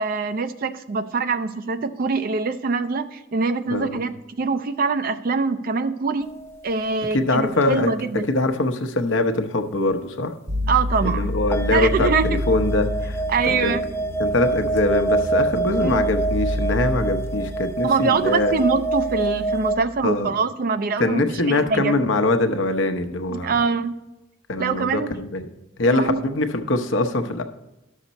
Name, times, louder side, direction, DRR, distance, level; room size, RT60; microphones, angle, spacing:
voice 1, 0.0-6.3 6.6-8.3 10.7-11.3 11.7-12.3 13.3-13.8 15.8-16.0 17.8-22.0 23.3-24.0 24.6-25.1 25.9-26.2, right 4 dB, 50° right, 10 dB, 0.4 m, -24 dB
voice 2, 3.7-4.0 7.1-7.9 8.3-10.3 11.0-13.7 14.2-18.5 20.0-20.3 21.0-23.5 24.5-25.5 25.8-27.4, left 2 dB, 75° left, 7 dB, 0.8 m, -23 dB
sound 1, 6.2-7.3 7.6-7.7 10.9-11.2 11.5-19.8, right 3 dB, 15° left, 0.6 m, -26 dB
sound 2, 10.5-20.1, left 1 dB, 75° right, 2.0 m, -29 dB
11.5 x 6.5 x 4.1 m, 0.94 s
head